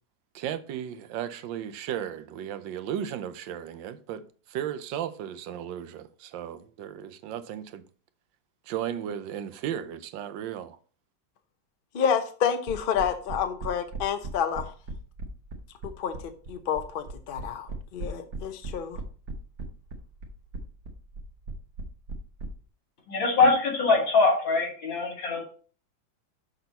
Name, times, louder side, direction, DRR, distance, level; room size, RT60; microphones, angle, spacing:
voice 1, 0.3-4.2 4.5-7.8 8.7-10.8, right 10 dB, 80° right, 1.3 m, -35 dB
voice 2, 11.9-14.7 16.0-16.2 16.5-19.0, left 7 dB, 50° left, 0.6 m, -29 dB
sound 1, 12.7-22.5, right 3 dB, 60° right, 1.7 m, -37 dB
voice 3, 23.1-25.4, left 3 dB, 80° left, 3.1 m, -23 dB
6.6 x 6.1 x 4.1 m
omnidirectional pair, 2.1 m